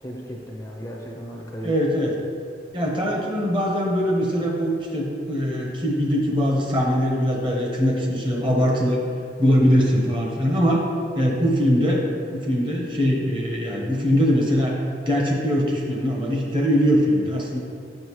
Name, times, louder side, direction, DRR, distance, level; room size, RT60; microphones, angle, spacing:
voice 1, 0.0-1.7, equal, 15° left, -1 dB, 0.6 m, -35 dB
voice 2, 1.6-2.2 2.7-9.0 9.4-10.8 11.1-12.0 12.3-14.7 15.0-17.6, equal, 30° right, -1 dB, 1.0 m, -21 dB
7.6 x 6.2 x 3.1 m, 2.3 s
head